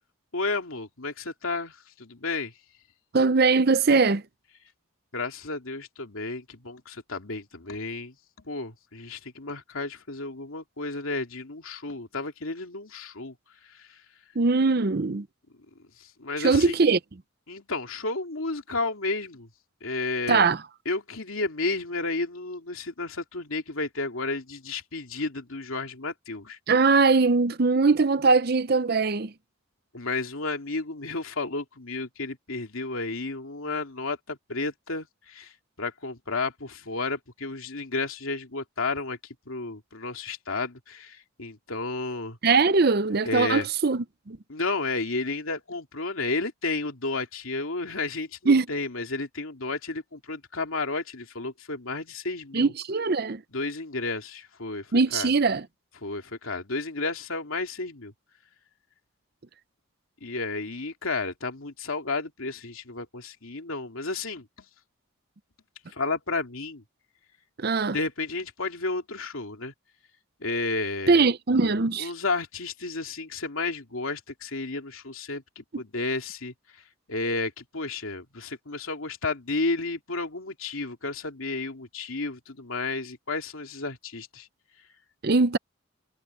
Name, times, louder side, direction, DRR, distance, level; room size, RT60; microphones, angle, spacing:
voice 1, 0.3-2.5 5.1-8.2 8.4-13.4 13.6-14.0 16.0-16.8 17.5-19.5 19.8-20.5 20.8-26.6 29.9-39.2 39.5-42.4 43.2-43.7 44.5-52.7 53.5-55.3 56.0-58.1 60.2-64.5 65.9-66.8 67.9-69.7 70.4-71.3 72.0-76.5 77.1-84.5, left 3 dB, 75° left, 2.8 m, -32 dB
voice 2, 3.1-4.2 14.4-15.3 16.4-17.0 20.3-20.6 26.7-29.3 42.4-44.4 48.5-48.7 52.5-53.4 54.9-55.6 67.6-68.0 71.1-72.1 85.2-85.6, right 4 dB, 45° right, 0.6 m, -21 dB
head